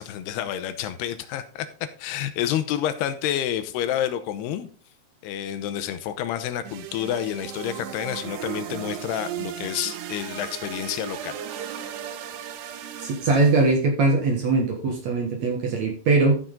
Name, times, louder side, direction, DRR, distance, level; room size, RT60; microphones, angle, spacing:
voice 1, 0.0-1.7 2.0-4.7 5.2-11.4, left 11 dB, 80° left, 11 dB, 2.8 m, -29 dB
sound 1, 6.6-13.8, right 10 dB, 85° right, 3.1 m, -36 dB
voice 2, 13.0-16.4, right 3 dB, 55° right, 1 dB, 2.3 m, -21 dB
13.5 x 5.9 x 3.8 m, 0.41 s
omnidirectional pair, 4.7 m